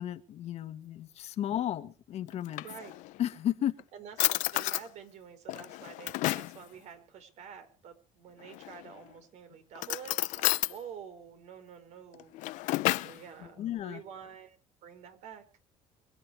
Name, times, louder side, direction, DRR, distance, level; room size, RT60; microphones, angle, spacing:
voice 1, 0.0-2.6 3.2-3.8 13.4-14.0, left 11 dB, 55° left, 11 dB, 1.7 m, -33 dB
Drawer open or close, 2.3-3.2 3.8-3.9 4.2-4.9 5.5-6.6 8.4-9.0 9.7-10.8 12.1-13.2, left 19 dB, 75° left, 0.7 m, -31 dB
voice 2, 3.9-12.7 13.0-14.6 14.8-15.6, right 8 dB, 65° right, 9 dB, 4.9 m, -48 dB
25.0 x 10.0 x 4.7 m, 0.36 s
cardioid pair, 120°, 13 cm